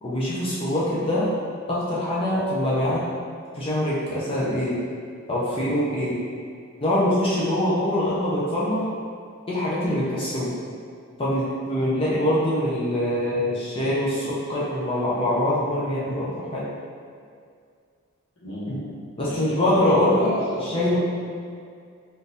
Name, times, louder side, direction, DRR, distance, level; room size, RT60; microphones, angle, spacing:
voice 1, 0.0-1.3 1.7-3.1 3.5-4.8 5.3-6.2 6.8-8.9 9.5-10.6 11.2-16.6 19.2-20.3 20.7-21.0, left 1 dB, 25° left, -8 dB, 0.5 m, -24 dB
voice 2, 18.4-21.0, equal, 80° left, -9 dB, 1.1 m, -33 dB
3.8 x 2.5 x 2.7 m, 2.2 s
head